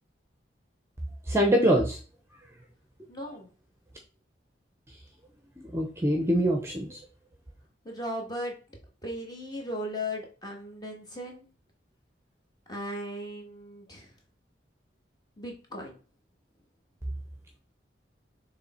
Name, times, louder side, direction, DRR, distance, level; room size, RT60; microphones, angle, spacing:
voice 1, 1.3-2.0 5.7-7.0, equal, 15° right, 3 dB, 0.8 m, -24 dB
voice 2, 3.1-3.5 7.8-8.5 9.0-11.5 12.7-14.1 15.4-15.9, left 1 dB, 20° left, 0 dB, 1.5 m, -37 dB
6.6 x 3.3 x 4.3 m, 0.36 s
head